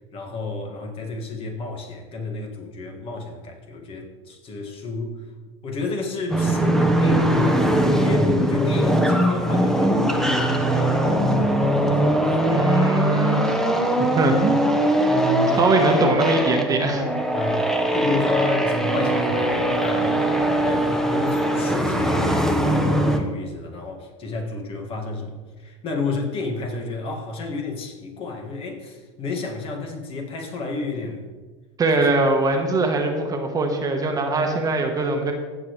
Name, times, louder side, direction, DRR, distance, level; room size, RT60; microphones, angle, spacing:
voice 1, 0.1-5.2 5.6-12.0 12.2-12.4 15.5-15.6 17.3-31.3 32.0-32.1, left 3 dB, 40° left, 2 dB, 2.1 m, -31 dB
sound 1, 6.3-23.2, right 1 dB, 5° left, 1.1 m, -21 dB
voice 2, 12.5-13.5 14.0-14.6 15.1-17.0 31.8-35.3, right 3 dB, 25° right, 4 dB, 1.3 m, -22 dB
16.0 x 6.9 x 3.3 m, 1.4 s
hypercardioid pair, 105°, 15 cm